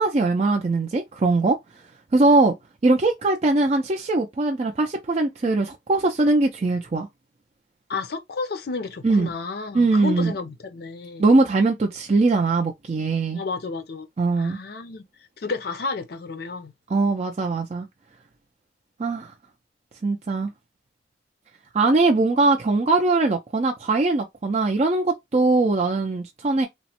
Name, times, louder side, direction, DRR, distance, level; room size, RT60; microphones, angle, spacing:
voice 1, 0.0-1.6 2.1-2.5 2.8-7.1 9.0-9.3 9.7-10.3 11.2-13.4 14.2-14.6 16.9-17.9 19.0-19.3 20.0-20.5 21.7-26.7, right 3 dB, 35° right, 0.4 m, -21 dB
voice 2, 7.9-11.2 13.3-14.1 14.4-15.0 15.4-16.7, left 4 dB, 55° left, 0.5 m, -31 dB
3.0 x 2.0 x 2.8 m
head